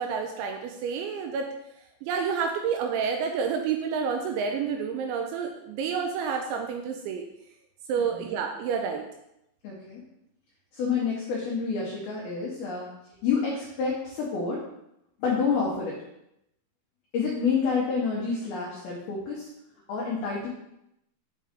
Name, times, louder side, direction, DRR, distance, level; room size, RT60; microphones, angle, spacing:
voice 1, 0.0-1.5 2.0-7.3 7.9-9.1, right 6 dB, 85° right, 3 dB, 2.7 m, -29 dB
voice 2, 8.0-8.3 9.6-10.0 10.7-12.9 13.2-14.6 15.2-16.0 17.1-19.5 19.9-20.5, left 5 dB, 80° left, -4 dB, 2.2 m, -28 dB
7.5 x 3.7 x 3.6 m, 0.82 s
omnidirectional pair, 5.7 m